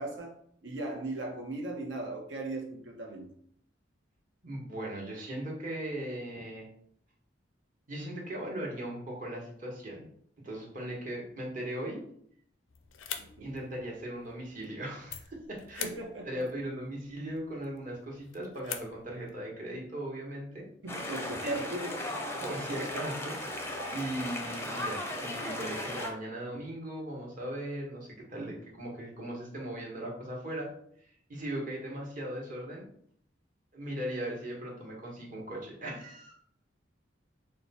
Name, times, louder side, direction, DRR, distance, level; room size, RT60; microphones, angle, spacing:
voice 1, 0.0-3.3 13.1-13.5 15.8-16.4 20.8-22.2 22.4-22.5, right 2 dB, 70° right, 1 dB, 1.0 m, -38 dB
voice 2, 4.4-6.7 7.9-10.1 10.4-12.0 13.4-15.9 16.2-20.6 21.4-21.6 22.4-30.7 31.3-32.8 33.7-36.3, right 1 dB, 45° right, -2 dB, 1.3 m, -38 dB
sound 1, 12.7-19.4, left 8 dB, 85° left, 0.5 m, -45 dB
sound 2, 20.9-26.1, left 1 dB, 15° left, 0.5 m, -36 dB
4.5 x 2.3 x 4.1 m, 0.64 s
head